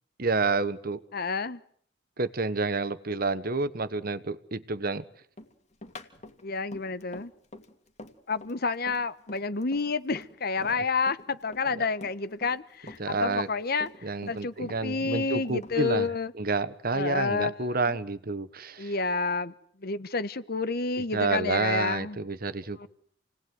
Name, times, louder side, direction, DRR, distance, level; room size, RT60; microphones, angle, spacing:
voice 1, 0.2-1.0 2.2-5.0 13.0-13.5 14.0-16.1 16.4-18.9 21.1-22.9, right 3 dB, 50° right, 14 dB, 1.3 m, -29 dB
voice 2, 1.1-1.6 6.4-7.3 8.3-16.3 16.9-18.0 18.8-19.5 19.8-22.2 22.8-22.9, left 4 dB, 50° left, 15 dB, 1.1 m, -30 dB
Run, 5.4-10.8 11.1-12.6 12.9-14.4 14.7-16.1, left 2 dB, 35° left, 2.5 m, -46 dB
28.5 x 18.5 x 9.5 m, 0.63 s
head